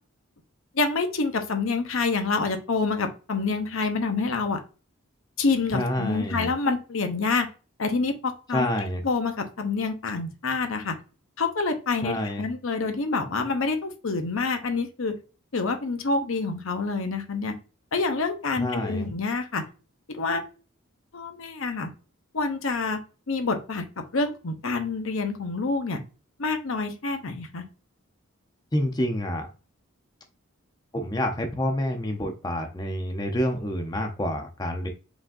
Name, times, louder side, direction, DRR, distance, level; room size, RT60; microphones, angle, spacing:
voice 1, 0.7-4.6 5.4-7.5 7.8-8.7 9.0-11.0 11.4-15.2 15.5-17.6 17.9-19.6 20.1-20.4 21.1-21.9 22.3-23.0 23.3-26.0 26.4-27.6, left 4 dB, 70° left, 6 dB, 0.8 m, -27 dB
voice 2, 5.7-6.5 8.5-9.0 12.0-12.4 18.6-19.1 28.7-29.5 30.9-34.9, left 1 dB, 20° left, 4 dB, 0.6 m, -28 dB
5.0 x 3.8 x 2.5 m, 0.34 s
head